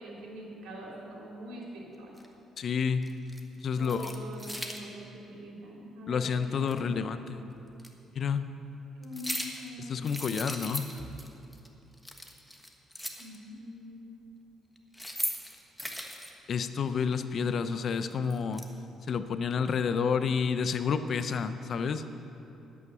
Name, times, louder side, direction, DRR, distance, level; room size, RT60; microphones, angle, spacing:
voice 1, 0.0-2.1 3.8-7.3 9.0-10.2 13.2-14.0, equal, 75° right, -3 dB, 3.1 m, -44 dB
sound 1, 2.2-2.3 3.0-3.4 3.8-4.8 6.7-6.8 7.8-7.9 9.0-9.7 10.0-11.3 11.5-11.7 11.9-13.4 14.8-16.3 18.0-18.6, equal, 5° left, 1.2 m, -38 dB
voice 2, 2.6-3.1 3.6-4.1 6.1-7.4 8.2-8.5 9.8-10.9 16.5-18.7 19.1-22.0, left 6 dB, 55° left, 11 dB, 0.6 m, -29 dB
10.5 x 8.5 x 6.8 m, 2.9 s
cardioid pair, 85°, 0 cm